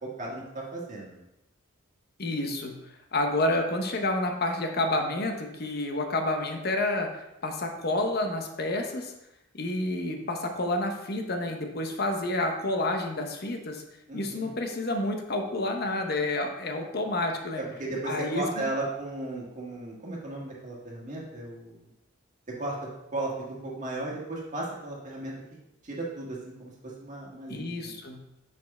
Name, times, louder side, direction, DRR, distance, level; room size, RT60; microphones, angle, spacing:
voice 1, 0.0-1.2 14.1-14.5 17.6-21.8 22.5-25.3 25.8-28.0, right 2 dB, 35° right, -4 dB, 1.6 m, -35 dB
voice 2, 2.2-2.7 3.1-9.1 9.5-13.8 14.1-17.6 18.1-18.7 27.5-28.2, left 2 dB, 50° left, 4 dB, 0.8 m, -29 dB
6.1 x 4.6 x 4.2 m, 0.89 s
head